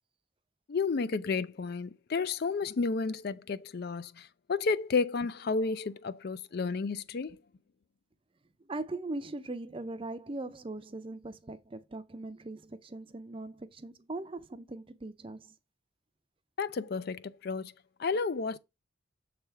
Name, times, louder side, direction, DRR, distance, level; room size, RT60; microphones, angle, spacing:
voice 1, 0.7-7.4 16.6-17.7 18.0-18.6, left 4 dB, 50° left, 0.4 m, -32 dB
voice 2, 8.7-15.5, right 2 dB, 25° right, 0.5 m, -40 dB
7.1 x 3.4 x 5.6 m
head